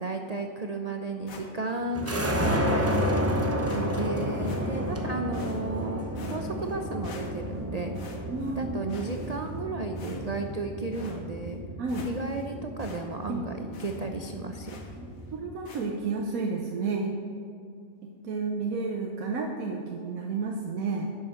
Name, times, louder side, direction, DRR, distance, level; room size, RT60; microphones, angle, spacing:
voice 1, 0.0-8.0 8.6-11.6 12.0-14.8, right 3 dB, 50° right, 4 dB, 0.4 m, -34 dB
sound 1, 1.3-1.8 2.0-2.3 2.9-3.1 3.7-3.8 4.5-4.9 5.3-5.8 6.2-6.8 7.0-7.6 7.9-8.6 8.9-9.6 10.0-10.5 10.9-11.2 11.6-11.7 11.9-12.5 12.8-13.0 13.3-13.4 13.7-14.0 14.7-15.0 15.7-15.9, left 3 dB, 70° left, 1.7 m, -47 dB
sound 2, 1.9-15.5, equal, 15° right, 0.6 m, -31 dB
voice 2, 8.3-8.8 11.8-12.1 13.3-13.7 15.0-17.1 18.0-21.1, right 4 dB, 75° right, 1 dB, 1.3 m, -32 dB
10.5 x 7.4 x 6.4 m, 2.4 s
omnidirectional pair, 1.5 m